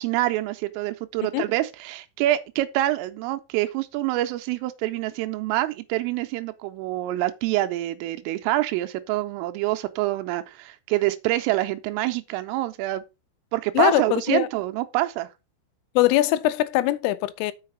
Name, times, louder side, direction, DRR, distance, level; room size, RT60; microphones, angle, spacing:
voice 1, 0.0-13.0 13.5-15.3, right 16 dB, 85° right, 3.2 m, -26 dB
voice 2, 13.8-14.5 16.0-17.5, left 15 dB, 85° left, 3.1 m, -21 dB
6.6 x 5.6 x 5.4 m
omnidirectional pair, 5.9 m